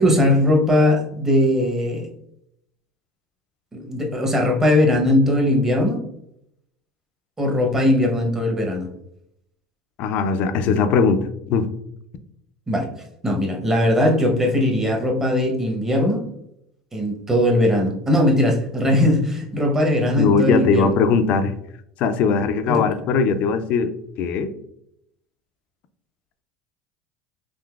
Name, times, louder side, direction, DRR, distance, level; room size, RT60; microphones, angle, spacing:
voice 1, 0.0-2.1 3.7-6.0 7.4-8.9 12.7-12.9 13.2-16.3 16.9-20.9 22.7-22.9, left 1 dB, 15° right, 1 dB, 0.8 m, -19 dB
voice 2, 10.0-11.7 20.2-21.5 22.0-24.5, left 5 dB, 55° left, 10 dB, 0.4 m, -20 dB
3.7 x 2.6 x 2.3 m, 0.75 s
supercardioid pair, 105°, 3 cm